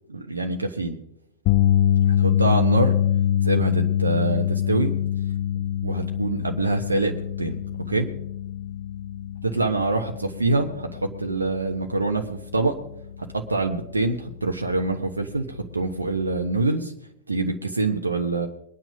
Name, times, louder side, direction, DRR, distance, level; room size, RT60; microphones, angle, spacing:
voice 1, 0.1-1.0 2.0-2.9 3.4-4.9 5.8-8.1 9.4-12.7 13.3-16.9 17.3-18.5, right 3 dB, 80° right, 4 dB, 1.2 m, -25 dB
sound 1, 1.5-13.7 14.0-14.3 16.5-16.6, left 10 dB, 45° left, 1.0 m, -24 dB
22.5 x 9.2 x 5.2 m, 0.78 s
figure-of-eight pair, 90°, 0 cm